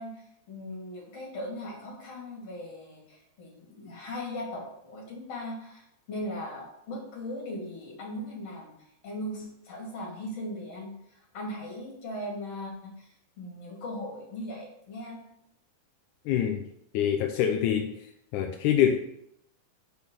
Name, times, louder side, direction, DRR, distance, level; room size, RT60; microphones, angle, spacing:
voice 1, 0.0-15.2, left 1 dB, 45° left, -2 dB, 3.7 m, -39 dB
voice 2, 16.3-16.6 16.9-18.0 18.3-19.0, left 9 dB, 75° left, 4 dB, 1.9 m, -25 dB
7.7 x 5.2 x 6.6 m, 0.75 s
omnidirectional pair, 4.1 m